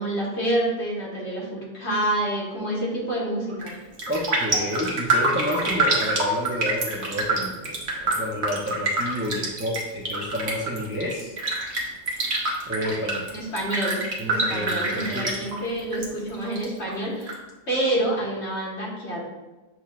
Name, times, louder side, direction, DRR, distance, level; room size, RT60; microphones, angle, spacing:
voice 1, 0.0-3.8 13.3-14.0 14.3-17.4 17.7-19.2, right 1 dB, 65° left, -5 dB, 1.7 m, -27 dB
Raindrop, 3.5-3.7 4.0-16.1 16.3-17.3 17.7-17.8, right 2 dB, 65° right, 1.2 m, -26 dB
voice 2, 4.1-11.3 12.7-13.3 14.2-15.3, left 1 dB, 20° right, -3 dB, 0.3 m, -30 dB
7.1 x 2.9 x 2.4 m, 1.2 s
omnidirectional pair, 1.3 m